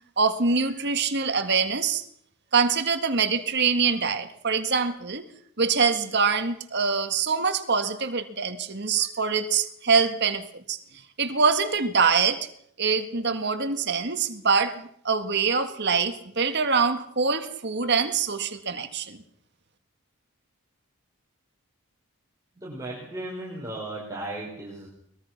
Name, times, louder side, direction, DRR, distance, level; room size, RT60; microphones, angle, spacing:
voice 1, 0.2-2.0 2.5-5.2 5.6-10.4 10.7-10.8 11.2-12.4 12.8-19.2, right 5 dB, 50° right, 8 dB, 1.9 m, -24 dB
voice 2, 22.5-24.9, right 1 dB, 15° right, -5 dB, 5.1 m, -36 dB
22.5 x 21.5 x 6.0 m, 0.68 s
head